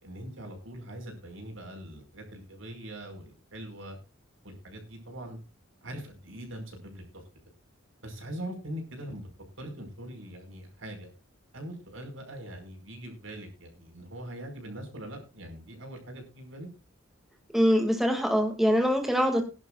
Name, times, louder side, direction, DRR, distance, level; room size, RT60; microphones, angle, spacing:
voice 1, 0.0-4.0 4.4-5.4 5.8-7.2 8.0-9.3 9.6-11.1 11.5-16.7, right 1 dB, 70° right, 4 dB, 5.3 m, -42 dB
voice 2, 17.5-19.4, equal, ahead, 4 dB, 2.2 m, -23 dB
21.0 x 11.0 x 2.4 m, 0.29 s
head